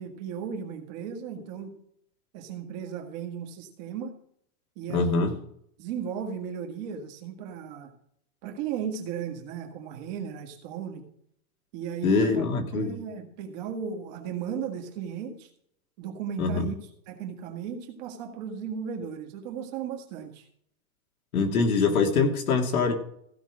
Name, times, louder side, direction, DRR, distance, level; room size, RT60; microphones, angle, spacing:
voice 1, 0.0-1.7 2.3-4.2 4.8-5.2 5.8-7.9 8.4-11.0 11.7-12.4 12.7-15.5 16.0-16.8 17.1-20.4, right 7 dB, 30° right, 3 dB, 1.7 m, -35 dB
voice 2, 4.9-5.3 12.0-13.0 16.4-16.7 21.3-22.9, left 4 dB, 90° left, 3 dB, 2.7 m, -24 dB
15.5 x 5.5 x 6.2 m, 0.70 s
supercardioid pair, 180°, 42 cm